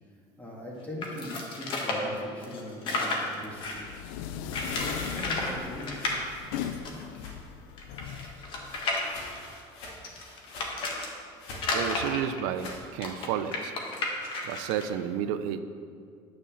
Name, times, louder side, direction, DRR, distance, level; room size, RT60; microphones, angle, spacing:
voice 1, 0.4-3.8 4.6-6.2, left 1 dB, 15° left, -3 dB, 2.0 m, -40 dB
sound 1, 1.0-3.9 4.5-5.5 5.8-6.2 6.8-6.9 7.1-7.2 7.8-11.1 11.5-14.8, left 2 dB, 50° left, 1.5 m, -32 dB
sound 2, 3.3-7.6 7.9-12.9, left 2 dB, 65° left, 1.9 m, -48 dB
sound 3, 3.6-9.4, left 9 dB, 90° left, 0.4 m, -39 dB
voice 2, 11.7-13.7 14.0-14.1 14.4-15.6, right 9 dB, 85° right, 10 dB, 0.5 m, -31 dB
9.8 x 4.2 x 7.0 m, 2.2 s
cardioid pair, 130°, 11 cm